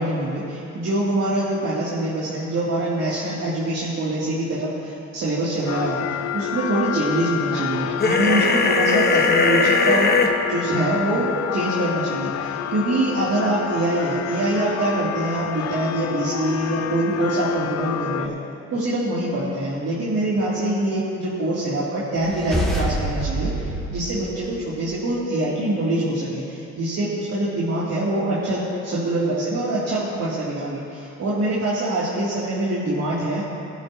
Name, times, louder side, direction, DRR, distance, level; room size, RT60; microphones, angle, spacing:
voice 1, 0.0-6.0 6.3-18.3 18.7-23.5 23.9-33.5, right 1 dB, 60° right, -8 dB, 2.7 m, -24 dB
sound 1, 5.7-18.3, left 11 dB, 55° left, 0.5 m, -29 dB
sound 2, 8.0-10.3, left 4 dB, 30° left, 1.1 m, -19 dB
sound 3, 22.2-25.0, right 1 dB, ahead, 2.4 m, -27 dB
19.5 x 11.0 x 2.8 m, 2.7 s
cardioid pair, 90°, 30 cm